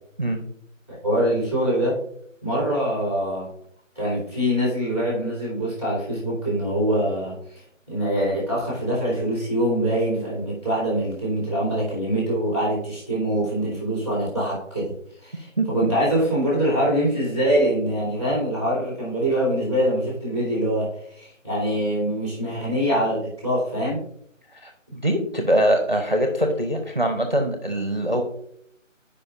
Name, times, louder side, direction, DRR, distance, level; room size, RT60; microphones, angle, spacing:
voice 1, 0.9-2.0 2.4-3.5 3.9-14.9 15.2-24.0, equal, 20° left, -6 dB, 2.9 m, -24 dB
voice 2, 24.5-28.2, right 1 dB, 35° right, 4 dB, 0.7 m, -23 dB
11.5 x 5.1 x 2.5 m, 0.68 s
figure-of-eight pair, 175°, 39 cm